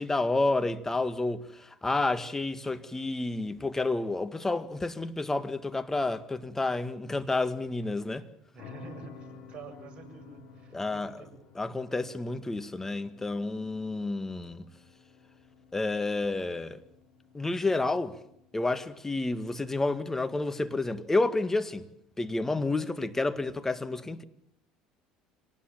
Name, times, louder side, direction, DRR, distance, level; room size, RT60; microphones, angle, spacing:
voice 1, 0.0-8.2 10.7-11.2 11.6-14.6 15.7-16.8 17.3-18.2 18.5-21.9 22.2-24.2, left 2 dB, 15° left, 1.8 m, -30 dB
voice 2, 8.5-11.3, right 4 dB, 45° right, 7.0 m, -48 dB
sound 1, 8.6-19.3, left 5 dB, 55° left, 7.6 m, -53 dB
26.0 x 19.0 x 7.5 m
hypercardioid pair, 75°, 3 cm